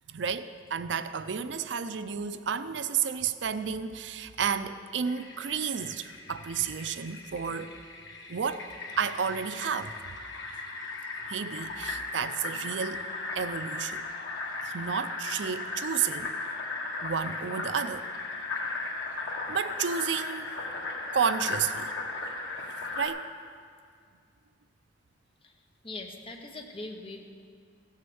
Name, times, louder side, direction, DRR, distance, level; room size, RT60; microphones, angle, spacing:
voice 1, 0.1-7.7 8.3-9.9 11.3-13.0 13.3-14.1 14.6-16.3 17.0-18.1 19.5-20.6 21.1-21.9 23.0-23.3, right 7 dB, 70° right, 12 dB, 0.5 m, -31 dB
Fill (with liquid), 5.0-23.1, left 3 dB, 80° left, 1.8 m, -37 dB
voice 2, 25.8-27.3, left 2 dB, 30° left, 3 dB, 1.1 m, -41 dB
16.0 x 6.5 x 7.0 m, 2.2 s
head